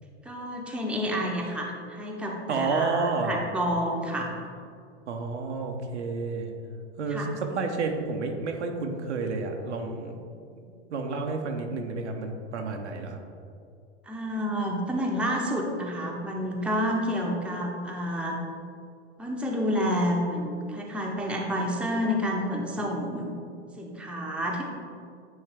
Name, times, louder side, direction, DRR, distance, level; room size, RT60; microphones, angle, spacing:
voice 1, 0.2-4.3 7.1-7.3 14.0-18.4 19.2-23.3 23.8-24.6, equal, 5° right, -1 dB, 0.7 m, -29 dB
voice 2, 2.5-3.3 5.1-6.5 7.0-10.2 10.5-10.6 10.9-13.2, right 4 dB, 85° right, 3 dB, 0.8 m, -30 dB
8.8 x 3.2 x 3.4 m, 2.4 s
hypercardioid pair, 105°, 34 cm